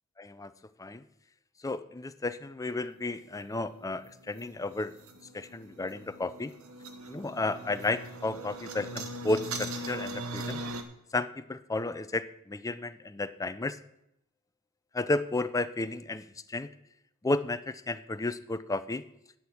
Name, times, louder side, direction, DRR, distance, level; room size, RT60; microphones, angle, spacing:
voice 1, 0.2-0.5 0.8-1.0 1.6-4.9 5.3-6.5 7.1-10.6 11.1-13.8 14.9-16.7 17.2-19.0, left 2 dB, 15° left, 12 dB, 0.4 m, -33 dB
sound 1, 2.9-10.8, right 1 dB, 70° right, 1.1 m, -41 dB
8.7 x 7.8 x 7.2 m, 0.80 s
head